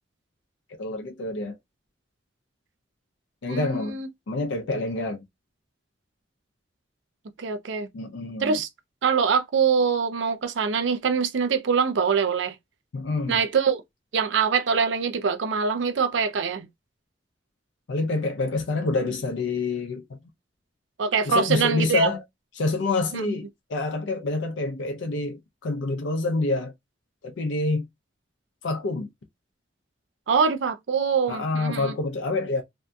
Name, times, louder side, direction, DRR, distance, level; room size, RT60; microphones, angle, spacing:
voice 1, 0.8-1.6 3.4-4.0 4.3-5.2 7.9-8.6 12.9-13.4 17.9-20.2 21.3-22.2 22.6-26.7 27.2-27.9 28.6-29.1 31.3-32.6, left 3 dB, 90° left, 0.5 m, -27 dB
voice 2, 3.5-4.1 7.4-7.9 8.4-8.7 9.0-12.5 13.3-13.8 14.1-16.7 21.0-22.1 23.1-23.4 30.3-31.9, right 6 dB, 85° right, 0.5 m, -24 dB
2.6 x 2.5 x 2.2 m
head